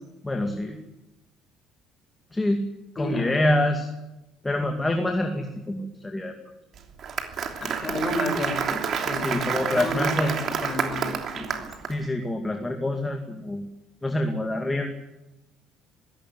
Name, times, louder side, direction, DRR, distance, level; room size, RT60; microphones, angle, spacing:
voice 1, 0.2-0.8 2.3-2.6 3.0-3.9 4.4-6.4 9.2-10.4 11.9-13.7 14.0-14.9, left 1 dB, 10° left, 4 dB, 2.3 m, -26 dB
voice 2, 3.0-3.6 7.6-11.6, left 1 dB, 30° left, 4 dB, 6.9 m, -32 dB
Applause, 6.8-11.9, right 7 dB, 50° right, 3.0 m, -29 dB
21.5 x 17.0 x 9.5 m, 0.99 s
cardioid pair, 115°, 0 cm